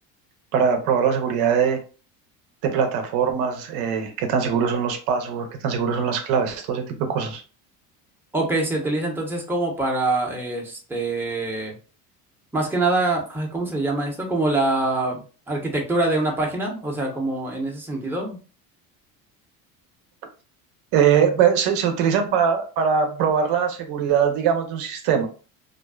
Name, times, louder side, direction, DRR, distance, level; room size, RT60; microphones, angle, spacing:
voice 1, 0.5-1.8 2.6-7.4 20.9-25.3, right 7 dB, 75° right, 5 dB, 0.7 m, -22 dB
voice 2, 8.3-11.7 12.5-18.4, right 2 dB, 5° right, -1 dB, 0.7 m, -24 dB
2.5 x 2.2 x 2.2 m, 0.35 s
supercardioid pair, 95°, 41 cm